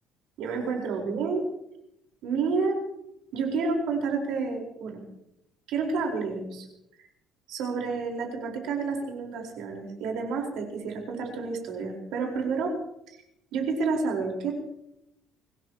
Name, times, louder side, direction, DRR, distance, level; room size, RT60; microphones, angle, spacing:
voice 1, 0.4-1.4 2.2-2.8 3.3-5.0 5.7-6.7 7.5-12.8 13.5-14.5, right 4 dB, 75° right, 1 dB, 4.5 m, -29 dB
24.5 x 17.5 x 3.0 m, 0.82 s
cardioid pair, 155°, 0 cm